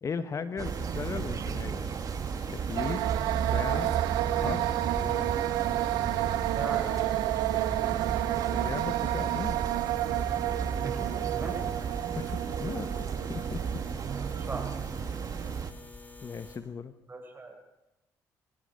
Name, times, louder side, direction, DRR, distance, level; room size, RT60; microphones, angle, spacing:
voice 1, 0.0-2.0 2.5-3.0 3.5-4.0 4.2-5.4 8.5-9.6 12.1-13.8 16.2-16.9, left 5 dB, 40° left, 11 dB, 1.2 m, -37 dB
sound 1, 0.6-16.6, left 3 dB, 20° left, 3.9 m, -48 dB
sound 2, 0.6-15.7, right 7 dB, 50° right, 1.5 m, -34 dB
sound 3, 2.8-14.6, right 15 dB, 90° right, 0.8 m, -31 dB
voice 2, 6.6-7.0 10.8-11.6 14.5-14.7 17.1-17.6, right 3 dB, 25° right, 3 dB, 7.4 m, -38 dB
24.5 x 17.5 x 6.7 m, 0.96 s
supercardioid pair, 80°, 8 cm